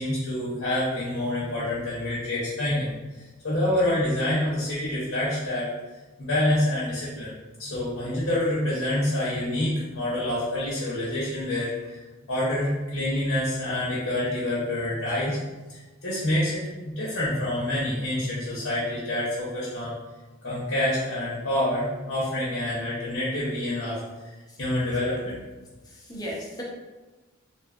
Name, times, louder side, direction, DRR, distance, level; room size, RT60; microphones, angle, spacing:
voice 1, 0.0-5.7 6.2-7.3 7.6-12.0 12.3-15.4 15.7-19.9 20.4-24.3 24.6-25.4, left 1 dB, 65° left, -7 dB, 0.7 m, -27 dB
voice 2, 25.8-26.6, equal, 20° left, -4 dB, 0.5 m, -36 dB
2.6 x 2.3 x 2.3 m, 1.2 s
head